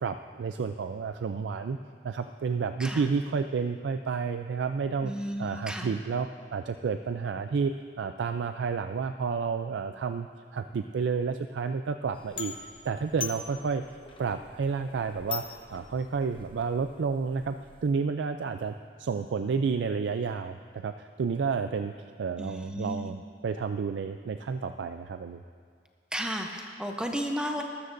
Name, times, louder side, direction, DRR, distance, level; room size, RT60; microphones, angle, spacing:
voice 1, 0.0-1.8 2.0-5.1 5.4-12.5 12.8-13.8 14.2-17.6 17.8-25.4, right 5 dB, 85° right, 8 dB, 0.4 m, -31 dB
voice 2, 5.0-5.9 22.4-23.1 26.1-27.6, equal, 5° right, 2 dB, 0.7 m, -33 dB
sound 1, 12.1-17.9, left 5 dB, 30° left, 1.0 m, -42 dB
19.5 x 13.0 x 2.6 m, 2.1 s
head